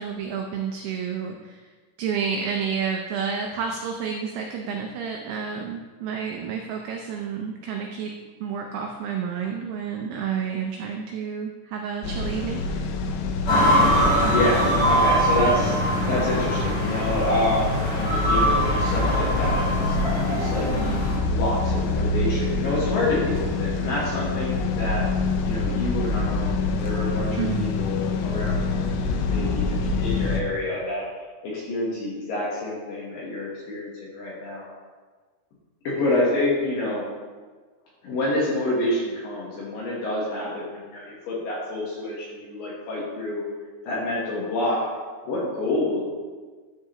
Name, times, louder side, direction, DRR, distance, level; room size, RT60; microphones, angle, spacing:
voice 1, 0.0-1.6 2.0-8.1 8.4-12.9 27.4-27.8, right 6 dB, 85° right, 2 dB, 2.3 m, -30 dB
sound 1, 12.0-30.4, left 3 dB, 85° left, 3.0 m, -26 dB
sound 2, 13.5-21.2, equal, 40° left, 2.1 m, -23 dB
voice 2, 14.0-15.8 16.0-20.7 21.3-25.1 25.4-31.0 31.4-34.7 35.8-37.0 38.0-43.4 43.8-44.8 45.2-46.0, left 2 dB, 70° left, -6 dB, 2.3 m, -28 dB
12.5 x 4.6 x 2.9 m, 1.4 s
omnidirectional pair, 5.3 m